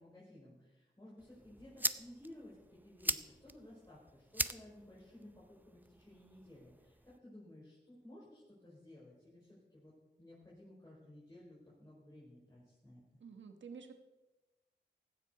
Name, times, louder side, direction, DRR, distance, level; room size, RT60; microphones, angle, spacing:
voice 1, 0.0-9.9 10.2-13.0, left 1 dB, 20° left, -7 dB, 5.3 m, -56 dB
sound 1, 1.2-7.2, right 1 dB, 10° right, 0.5 m, -42 dB
voice 2, 13.2-13.9, right 5 dB, 90° right, 6 dB, 1.2 m, -50 dB
16.0 x 12.5 x 4.0 m, 1.1 s
cardioid pair, 55°, 19 cm